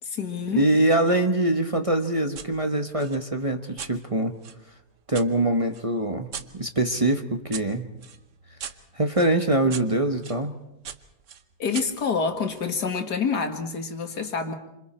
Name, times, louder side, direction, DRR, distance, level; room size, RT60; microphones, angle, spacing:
voice 1, 0.0-0.6 11.6-14.5, left 5 dB, 85° left, 5 dB, 2.5 m, -27 dB
voice 2, 0.5-4.3 5.1-7.9 8.9-10.5, right 1 dB, 25° right, 4 dB, 1.0 m, -23 dB
sound 1, 2.3-2.5 3.0-5.3 5.7-10.4 10.8-12.7, right 7 dB, 55° right, 1.2 m, -41 dB
28.0 x 26.5 x 4.4 m, 0.85 s
omnidirectional pair, 1.7 m